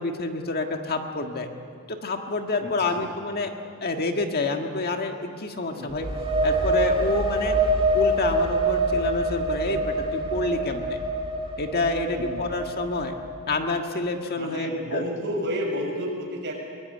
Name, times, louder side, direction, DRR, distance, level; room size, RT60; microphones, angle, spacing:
voice 1, 0.0-1.5 1.9-3.5 3.8-6.1 6.4-7.6 7.9-11.0 11.6-13.1 13.5-15.0, left 3 dB, 45° left, 4 dB, 1.7 m, -28 dB
voice 2, 2.6-3.0 5.7-5.9 12.1-12.4 14.3-16.7, equal, 55° right, 0 dB, 6.3 m, -31 dB
sound 1, 5.9-13.5, right 1 dB, 25° right, 2.5 m, -25 dB
23.5 x 21.0 x 9.7 m, 2.2 s
head